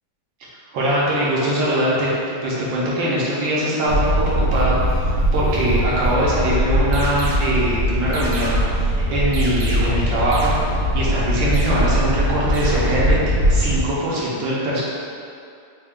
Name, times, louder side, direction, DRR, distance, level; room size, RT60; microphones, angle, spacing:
voice 1, 0.7-13.2 13.5-14.8, equal, 70° right, -6 dB, 1.3 m, -22 dB
sound 1, 3.9-13.8, equal, 45° right, 0.8 m, -21 dB
sound 2, 6.9-7.6 8.1-8.9 9.3-10.1 10.3-11.0 11.5-12.2 12.5-13.2, right 1 dB, 90° right, 1.6 m, -32 dB
4.4 x 2.2 x 3.5 m, 2.4 s
omnidirectional pair, 2.3 m